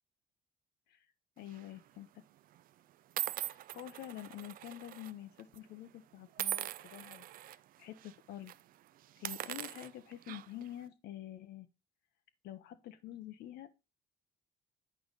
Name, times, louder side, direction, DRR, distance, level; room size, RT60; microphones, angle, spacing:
voice 1, 1.4-2.2 3.4-8.5 9.2-11.7 12.4-13.7, left 12 dB, 75° left, 0.8 m, -48 dB
sound 1, 1.5-1.8 2.5-2.6 3.2-5.1 5.4-5.6 6.4-7.6 8.0-8.1 8.4-8.6 9.1-10.7, right 12 dB, 55° right, 0.4 m, -41 dB
8.6 x 4.6 x 4.0 m
cardioid pair, 110°, 17 cm